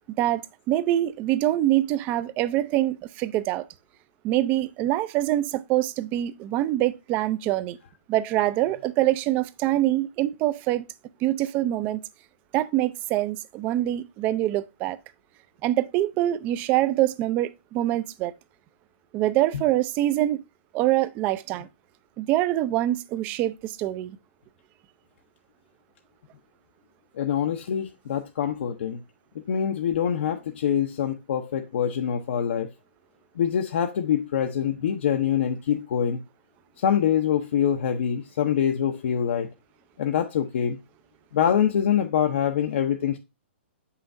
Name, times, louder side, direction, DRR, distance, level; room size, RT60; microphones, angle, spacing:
voice 1, 0.2-3.7 4.2-7.8 8.1-10.8 11.2-12.0 12.5-15.0 15.6-18.3 19.1-20.4 20.7-21.7 22.2-24.2, right 14 dB, 25° right, 0.4 m, -24 dB
voice 2, 27.2-29.0 29.5-32.7 33.4-36.2 36.8-39.5 40.0-40.8 41.3-43.2, left 9 dB, 60° left, 0.7 m, -25 dB
7.0 x 5.6 x 2.5 m
hypercardioid pair, 150°, 7 cm